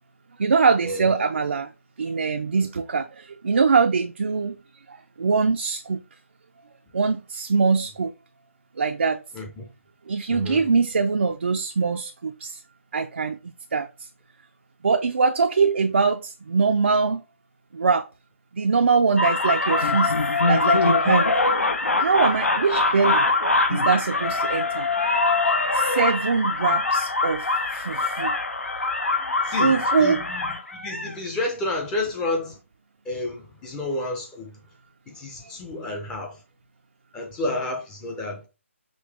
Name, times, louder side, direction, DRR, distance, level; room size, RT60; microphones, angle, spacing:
voice 1, 0.4-1.7 2.0-4.6 4.9-6.0 6.9-8.1 8.8-9.2 10.1-12.6 12.9-13.4 13.7-13.9 14.8-17.2 17.7-18.1 18.5-20.1 20.5-21.3 22.0-24.9 25.7-28.4 29.6-30.2, right 5 dB, 60° right, 0.4 m, -23 dB
voice 2, 9.3-9.7 10.3-10.6 29.4-32.6 33.0-34.6 35.1-36.4 37.1-38.5, left 2 dB, 10° left, 0.5 m, -30 dB
sound 1, 19.2-31.1, left 3 dB, 85° left, 1.0 m, -23 dB
5.3 x 2.9 x 3.3 m
figure-of-eight pair, 155°, 7 cm